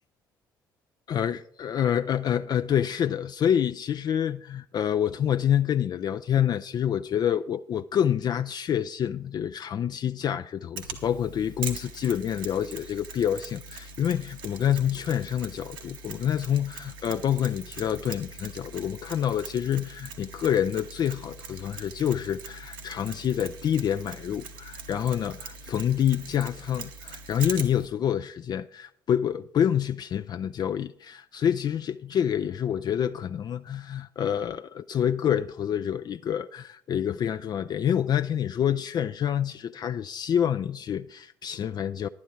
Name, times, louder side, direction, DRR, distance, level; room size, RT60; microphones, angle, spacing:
voice 1, 1.1-42.1, left 9 dB, 40° left, 0.3 m, -27 dB
Mechanisms, 10.8-27.9, right 4 dB, 75° right, 1.0 m, -42 dB
11.0 x 9.5 x 4.4 m
figure-of-eight pair, 50°, 11 cm